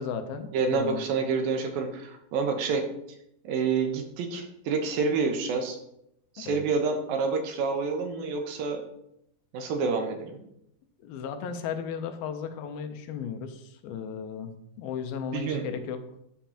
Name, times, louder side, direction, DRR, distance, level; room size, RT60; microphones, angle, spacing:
voice 1, 0.0-1.0 6.4-6.6 11.0-16.0, left 6 dB, 85° left, 8 dB, 2.5 m, -35 dB
voice 2, 0.5-2.8 3.4-5.8 6.4-8.8 9.5-10.4 15.3-15.6, right 4 dB, 75° right, 4 dB, 2.7 m, -28 dB
9.8 x 7.2 x 2.9 m, 0.77 s
omnidirectional pair, 4.4 m